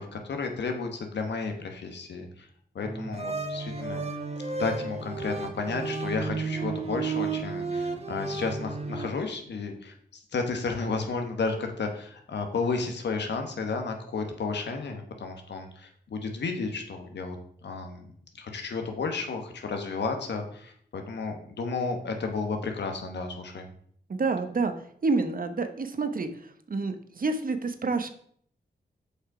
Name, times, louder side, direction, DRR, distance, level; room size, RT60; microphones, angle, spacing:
voice 1, 0.0-2.5 2.7-4.0 4.6-9.9 10.3-17.4 17.6-18.1 18.4-23.7, left 4 dB, 85° left, 4 dB, 1.2 m, -32 dB
sound 1, 2.8-9.1, right 4 dB, 35° right, 1.3 m, -33 dB
voice 2, 24.1-24.7 25.0-26.3 26.7-28.1, right 3 dB, 55° right, 8 dB, 1.0 m, -28 dB
6.7 x 5.5 x 4.9 m, 0.62 s
cardioid pair, 50°, 18 cm